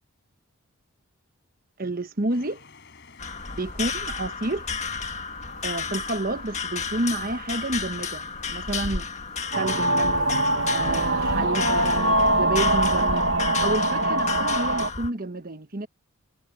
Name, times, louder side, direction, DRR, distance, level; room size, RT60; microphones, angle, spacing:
voice 1, 1.8-2.6 3.6-4.7 5.6-9.1 9.6-10.3 10.7-13.3 13.6-15.9, right 2 dB, 40° right, 1.2 m, -30 dB
sound 1, 2.3-9.6, left 3 dB, 55° left, 4.3 m, -51 dB
sound 2, 3.2-15.1, left 5 dB, 30° left, 1.6 m, -32 dB
sound 3, 9.5-14.9, right 1 dB, 60° right, 1.3 m, -23 dB
head